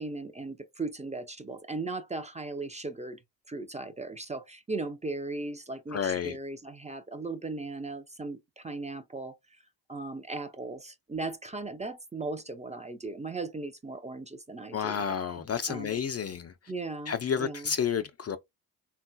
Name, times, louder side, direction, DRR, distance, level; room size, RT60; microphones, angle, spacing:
voice 1, 0.0-3.2 3.5-9.6 9.9-15.9 16.7-17.7, right 3 dB, 15° right, 0.5 m, -37 dB
voice 2, 5.9-6.4 14.7-16.5 17.1-18.4, left 7 dB, 35° left, 0.4 m, -30 dB
3.6 x 2.2 x 2.5 m
supercardioid pair, 50°, 43 cm